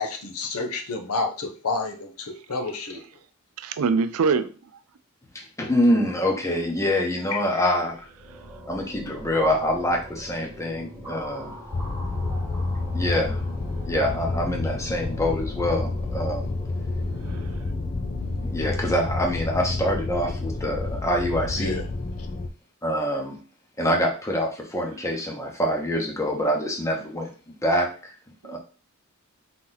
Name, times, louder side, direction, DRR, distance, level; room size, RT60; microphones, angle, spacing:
voice 1, 0.0-3.0 7.3-7.6 21.6-21.8, left 3 dB, 90° left, 4 dB, 0.8 m, -30 dB
voice 2, 3.6-4.5 8.3-8.4 17.1-17.6 28.4-28.6, right 5 dB, 80° right, 12 dB, 0.4 m, -25 dB
voice 3, 5.3-8.1 8.7-11.5 12.9-13.4 13.8-16.5 18.4-21.8 22.8-23.4 23.8-28.1 28.5-28.6, equal, 15° left, 1 dB, 0.8 m, -25 dB
sound 1, 7.8-19.2, equal, 15° right, 1.1 m, -42 dB
sound 2, 11.7-22.5, left 3 dB, 35° left, 0.3 m, -29 dB
3.9 x 2.9 x 3.9 m, 0.37 s
head